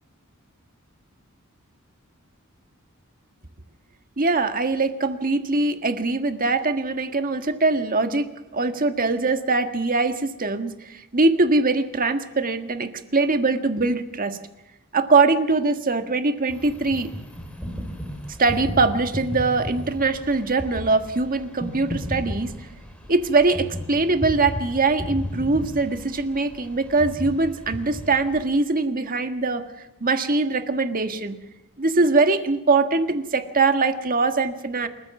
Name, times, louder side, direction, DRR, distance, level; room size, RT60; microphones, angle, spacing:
voice 1, 4.2-14.4 14.9-17.1 18.4-22.5 23.1-29.6 30.0-31.4 31.8-34.9, right 3 dB, 40° right, 8 dB, 1.6 m, -22 dB
sound 1, 16.5-28.5, equal, 5° left, 3.9 m, -34 dB
28.0 x 14.5 x 7.1 m, 0.96 s
head